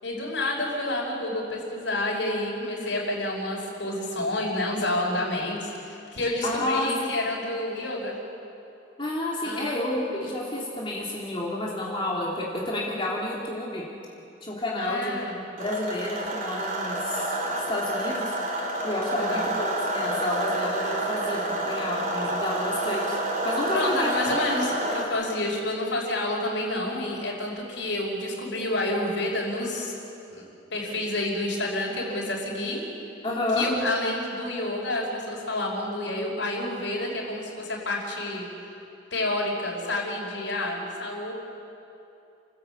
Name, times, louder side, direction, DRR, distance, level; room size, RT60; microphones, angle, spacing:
voice 1, 0.0-8.1 9.4-9.8 14.8-15.4 19.2-19.5 23.7-29.9 30.3-30.4 30.7-32.8 33.5-38.5 39.1-41.3, left 1 dB, 85° left, -3 dB, 5.6 m, -29 dB
voice 2, 6.4-7.1 9.0-13.8 14.4-17.4 17.7-18.3 18.8-23.2 23.4-24.1 33.2-33.7, left 1 dB, 30° left, -5 dB, 3.0 m, -30 dB
sound 1, 15.6-25.0, right 1 dB, 45° right, 4.2 m, -29 dB
30.0 x 15.0 x 8.7 m, 2.7 s
head